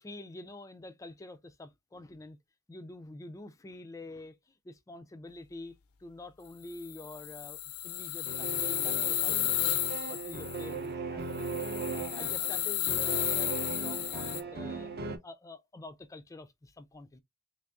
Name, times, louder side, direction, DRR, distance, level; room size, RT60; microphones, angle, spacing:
voice 1, 0.0-2.4 2.7-9.8 10.1-11.6 11.9-14.9 15.2-17.2, left 2 dB, 15° left, 0.3 m, -47 dB
sound 1, 6.7-10.7 11.4-14.4, left 14 dB, 75° left, 0.5 m, -33 dB
sound 2, 8.3-15.2, right 4 dB, 45° right, 0.5 m, -38 dB
3.4 x 3.4 x 2.4 m
head